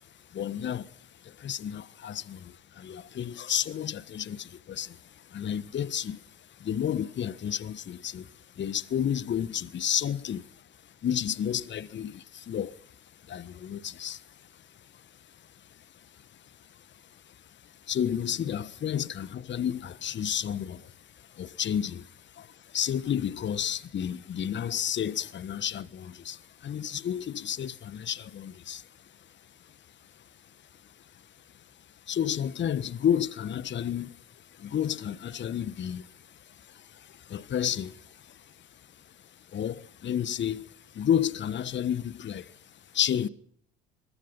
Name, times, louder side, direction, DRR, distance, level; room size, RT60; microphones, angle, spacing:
voice 1, 0.0-43.3, left 9 dB, 40° left, 1.4 m, -32 dB
25.5 x 23.5 x 5.6 m
hypercardioid pair, 60°, 29 cm